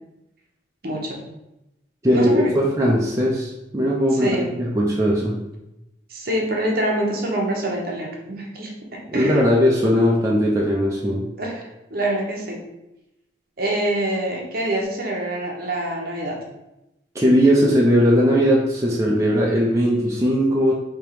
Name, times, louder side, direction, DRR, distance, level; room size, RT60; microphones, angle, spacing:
voice 1, 0.8-1.2 2.1-2.5 4.1-4.5 6.1-9.5 11.4-12.6 13.6-16.4, right 1 dB, 50° right, -1 dB, 0.9 m, -25 dB
voice 2, 2.0-5.4 9.1-11.3 17.1-20.7, equal, 15° right, -4 dB, 0.5 m, -19 dB
3.5 x 2.9 x 4.7 m, 0.92 s
head